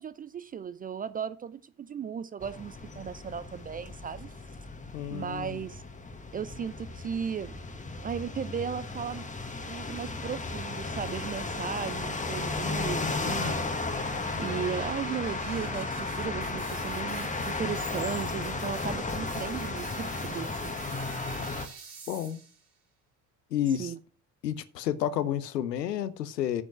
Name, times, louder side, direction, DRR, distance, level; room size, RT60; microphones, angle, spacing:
voice 1, 0.0-4.3 5.1-5.8 6.3-7.5 8.0-9.3 9.7-13.5 14.4-21.0 23.8-24.0, right 7 dB, 20° right, 0.4 m, -36 dB
sound 1, 2.4-21.7, left 3 dB, 15° left, 1.4 m, -34 dB
voice 2, 4.9-5.6 21.4-21.5 22.1-22.4 23.5-23.9 24.4-26.6, left 10 dB, 80° left, 0.8 m, -30 dB
sound 2, 11.5-22.7, right 5 dB, 50° right, 3.4 m, -48 dB
9.4 x 5.3 x 6.1 m
figure-of-eight pair, 55°, 48 cm